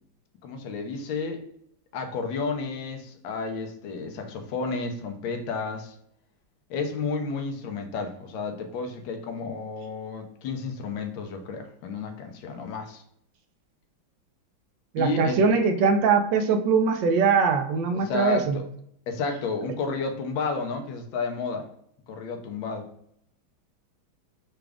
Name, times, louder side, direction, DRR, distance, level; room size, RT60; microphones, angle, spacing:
voice 1, 0.4-1.4 1.9-5.9 6.7-13.0 15.0-15.6 17.9-18.6 19.1-21.7 22.1-22.9, left 4 dB, 80° left, 1.4 m, -31 dB
voice 2, 14.9-18.6, right 5 dB, 75° right, 1.2 m, -22 dB
6.0 x 2.4 x 3.3 m
omnidirectional pair, 2.2 m